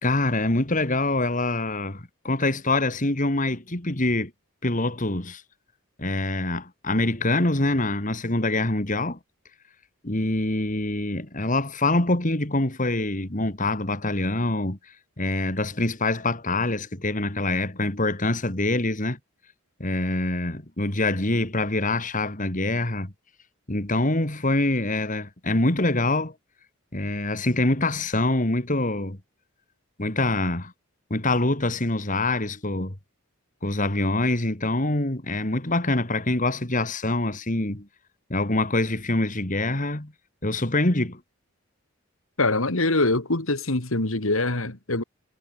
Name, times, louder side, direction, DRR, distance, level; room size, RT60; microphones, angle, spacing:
voice 1, 0.0-4.3 4.6-5.4 6.0-9.2 10.0-14.8 15.2-19.2 19.8-23.1 23.7-26.3 26.9-29.2 30.0-30.7 31.1-32.9 33.6-37.9 38.3-40.1 40.4-41.2, left 2 dB, 40° left, 2.8 m, -25 dB
voice 2, 42.4-45.0, left 2 dB, 75° left, 2.7 m, -24 dB
head